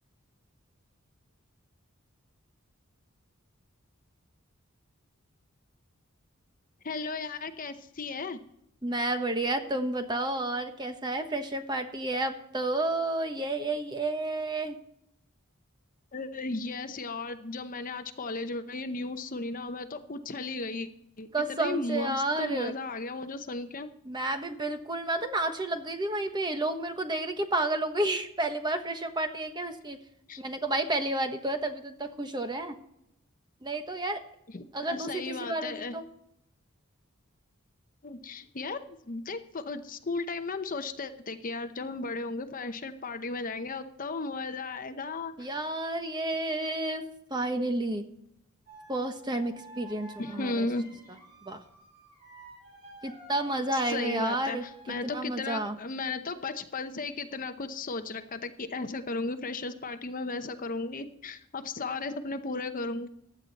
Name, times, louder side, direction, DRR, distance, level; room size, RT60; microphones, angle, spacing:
voice 1, 6.8-8.4 16.1-20.9 21.2-23.9 30.3-30.4 34.5-35.9 38.0-45.5 50.2-51.0 53.7-63.1, left 3 dB, 40° left, 9 dB, 0.8 m, -35 dB
voice 2, 8.8-14.7 21.3-22.7 24.0-30.0 30.4-32.8 33.6-34.2 34.7-36.0 45.4-47.0 47.3-48.0 48.9-50.7 51.4-51.6 53.0-55.8, right 2 dB, 20° right, 7 dB, 1.2 m, -31 dB
sound 1, 48.7-55.1, right 1 dB, 35° right, 5.3 m, -50 dB
15.5 x 10.5 x 4.1 m, 0.76 s
head